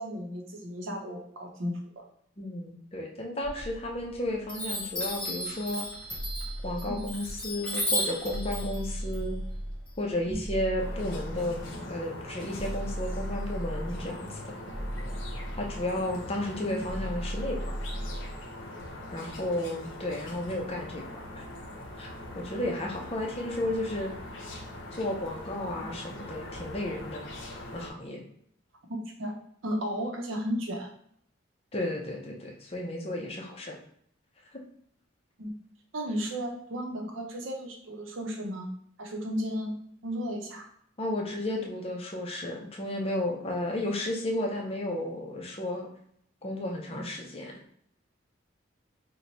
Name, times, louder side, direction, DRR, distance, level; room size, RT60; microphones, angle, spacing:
voice 1, 0.0-2.0 6.8-7.0 10.3-10.4 16.6-16.8 28.9-29.4 29.6-30.9 35.4-35.5 35.9-38.7 39.0-39.7 40.0-40.7 46.9-47.0, equal, 75° right, 2 dB, 0.7 m, -34 dB
voice 2, 2.4-5.9 6.6-9.4 10.0-11.6 11.9-14.5 15.6-17.6 19.1-21.4 22.0-24.1 24.9-27.2 27.7-28.2 31.7-33.8 34.5-34.6 41.0-45.9 46.4-47.5, left 1 dB, 30° left, 0 dB, 0.5 m, -33 dB
Chime, 3.4-4.1 4.5-10.3, equal, 5° left, 1.1 m, -34 dB
sound 1, 6.1-7.4 8.3-9.9 10.4-11.8 12.5-14.1 14.7-16.1 16.8-18.4, equal, 35° right, 0.5 m, -36 dB
sound 2, 10.8-27.9, left 1 dB, 70° left, 0.7 m, -42 dB
3.0 x 2.2 x 3.9 m, 0.68 s
head